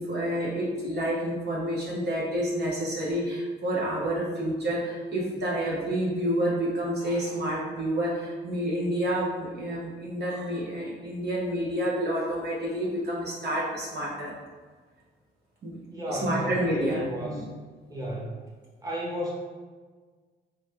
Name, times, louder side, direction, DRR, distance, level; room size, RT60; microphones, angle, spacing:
voice 1, 0.0-14.3 15.6-15.8 16.1-17.4, right 1 dB, 60° right, -5 dB, 1.0 m, -29 dB
voice 2, 15.9-17.5 17.9-18.4 18.8-19.3, equal, 15° right, -5 dB, 1.1 m, -33 dB
3.3 x 2.7 x 3.3 m, 1.5 s
cardioid pair, 90°, 20 cm